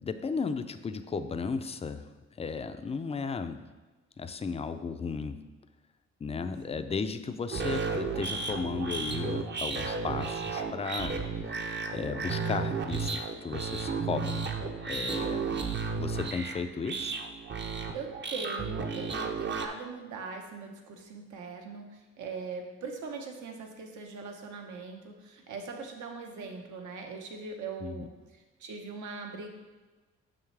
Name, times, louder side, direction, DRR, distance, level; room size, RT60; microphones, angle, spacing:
voice 1, 0.0-3.6 4.2-5.5 6.2-11.1 11.5-14.5 14.9-15.5 16.0-17.1 27.8-28.1, left 5 dB, 20° left, 9 dB, 0.4 m, -35 dB
sound 1, 7.5-19.7, right 4 dB, 35° right, 0.7 m, -33 dB
voice 2, 17.9-29.5, right 4 dB, 75° right, 2 dB, 1.1 m, -41 dB
6.8 x 5.8 x 3.3 m, 1.2 s
cardioid pair, 90°, 30 cm